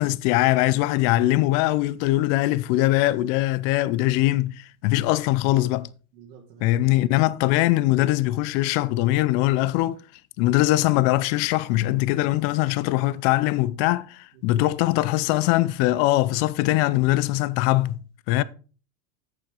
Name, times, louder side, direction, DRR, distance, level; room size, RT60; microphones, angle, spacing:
voice 1, 0.0-5.9 6.6-10.0 10.4-18.0 18.3-18.4, left 17 dB, 40° left, 0.4 m, -22 dB
voice 2, 6.1-7.1 14.3-14.7, right 6 dB, 85° right, 2.3 m, -48 dB
8.3 x 7.2 x 3.7 m
supercardioid pair, 125°, 49 cm